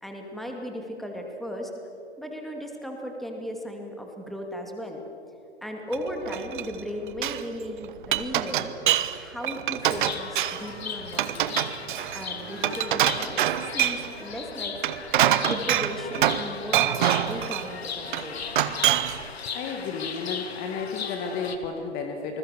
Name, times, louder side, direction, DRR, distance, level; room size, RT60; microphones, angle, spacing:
voice 1, 0.0-1.7 2.2-5.0 5.6-8.7 9.1-11.6 12.1-13.4 13.7-14.8 15.0-18.4, equal, ahead, 2 dB, 2.6 m, -36 dB
Glass, 5.9-6.8 7.1-7.4 7.8-9.2 9.4-10.7 11.1-14.1 14.7-16.5 16.7-17.7 18.1-19.2, right 12 dB, 45° right, 1.2 m, -25 dB
Chirp tweet, 9.8-21.6, left 6 dB, 65° left, 2.4 m, -37 dB
voice 2, 19.5-22.4, left 5 dB, 25° left, 4 dB, 1.8 m, -32 dB
28.0 x 20.5 x 6.8 m, 2.9 s
figure-of-eight pair, 125°, 34 cm